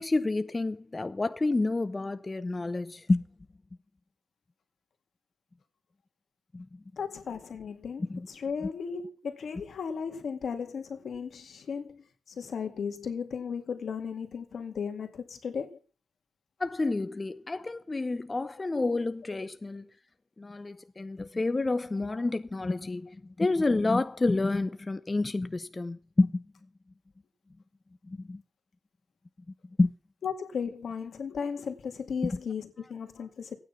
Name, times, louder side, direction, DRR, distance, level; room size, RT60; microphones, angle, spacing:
voice 1, 0.0-3.2 6.5-6.8 8.0-8.3 8.6-8.7 16.6-19.9 20.4-26.5 28.0-28.4 29.8-29.9 32.2-32.4, left 2 dB, 35° left, 0.7 m, -29 dB
voice 2, 7.0-15.7 19.4-19.5 30.2-33.6, left 6 dB, 90° left, 2.1 m, -35 dB
14.5 x 9.5 x 5.8 m
cardioid pair, 75°, 0 cm